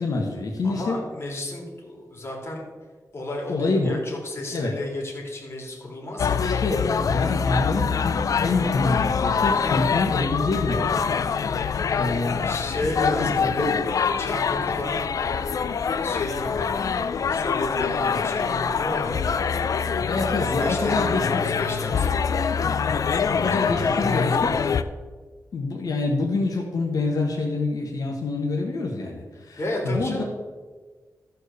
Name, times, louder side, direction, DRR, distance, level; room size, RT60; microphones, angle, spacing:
voice 1, 0.0-1.0 3.5-4.0 4.5-4.7 6.4-11.0 11.6-12.5 13.0-13.8 20.1-21.5 23.3-24.6 25.5-30.2, left 3 dB, 85° left, 0 dB, 1.4 m, -26 dB
voice 2, 0.6-2.6 3.1-6.4 12.4-16.8 17.3-19.2 20.0-22.5 23.8-24.5 29.6-30.2, left 1 dB, 45° left, -1 dB, 2.7 m, -33 dB
sound 1, 6.2-24.8, left 6 dB, 70° left, 0.5 m, -25 dB
13.5 x 4.6 x 6.7 m, 1.4 s
wide cardioid pair, 125°, 6 cm